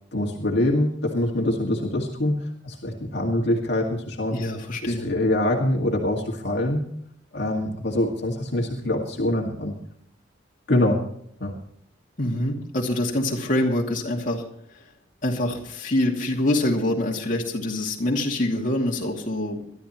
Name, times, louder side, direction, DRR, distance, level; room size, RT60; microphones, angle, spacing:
voice 1, 0.1-4.4 4.8-6.8 7.3-9.8 10.7-11.0 11.4-11.5, left 1 dB, 60° left, 0 dB, 2.0 m, -24 dB
voice 2, 4.3-5.1 12.2-14.4 15.2-19.7, left 1 dB, 40° left, -1 dB, 2.5 m, -25 dB
23.5 x 12.5 x 3.1 m, 0.67 s
head